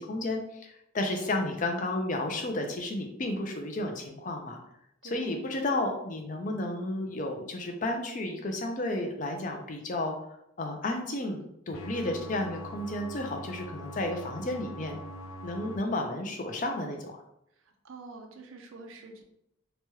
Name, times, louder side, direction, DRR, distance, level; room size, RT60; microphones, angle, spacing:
voice 1, 0.0-4.6 5.1-10.1 10.6-15.0 15.4-17.2, left 2 dB, 40° left, 4 dB, 0.4 m, -32 dB
voice 2, 1.0-1.5 5.0-5.5 17.6-19.2, right 3 dB, 90° right, 4 dB, 0.5 m, -47 dB
sound 1, 11.7-15.8, equal, 90° left, 0.5 m, -42 dB
3.0 x 2.2 x 3.0 m, 0.78 s
head